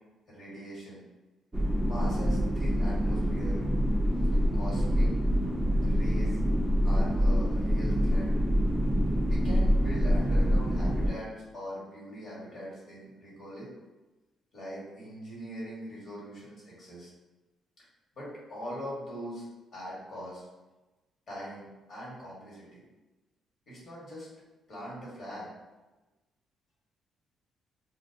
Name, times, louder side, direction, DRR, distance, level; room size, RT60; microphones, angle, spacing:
voice 1, 0.3-1.0 1.8-3.6 4.5-5.1 5.8-6.4 6.8-8.3 9.2-13.7 14.5-17.1 18.1-19.4 19.7-20.4 21.3-22.8 23.7-24.3 24.7-25.5, equal, 55° left, -6 dB, 1.4 m, -42 dB
sound 1, 1.5-11.1, equal, 10° right, 0.4 m, -26 dB
2.5 x 2.2 x 2.6 m, 1.1 s
cardioid pair, 90°, 0 cm